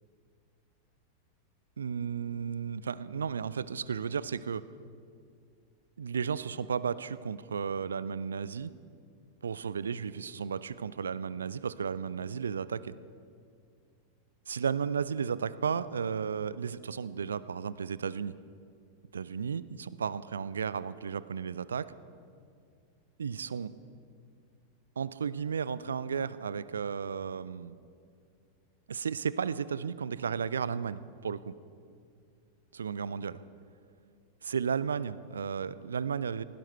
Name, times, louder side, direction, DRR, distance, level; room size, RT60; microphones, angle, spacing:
voice 1, 1.8-4.6 6.0-8.7 9.4-12.9 14.5-18.3 19.1-21.9 23.2-23.7 25.0-27.8 28.9-31.5 32.7-33.4 34.4-36.4, right 6 dB, 70° right, 17 dB, 0.5 m, -34 dB
19.5 x 16.5 x 4.4 m, 2.3 s
figure-of-eight pair, 90°, 0 cm